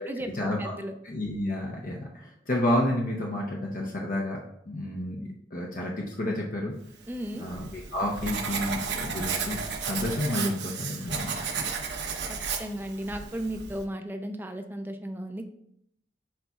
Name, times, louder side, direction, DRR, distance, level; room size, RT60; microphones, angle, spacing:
voice 1, 0.0-0.7 1.0-4.4 4.7-6.7 7.4-11.8, left 1 dB, 50° left, -1 dB, 0.7 m, -30 dB
voice 2, 0.6-0.9 7.1-7.5 12.3-15.5, right 1 dB, 10° right, 6 dB, 0.5 m, -35 dB
Writing, 7.1-13.8, right 5 dB, 75° right, 0.9 m, -34 dB
10.0 x 4.0 x 2.4 m, 0.74 s
head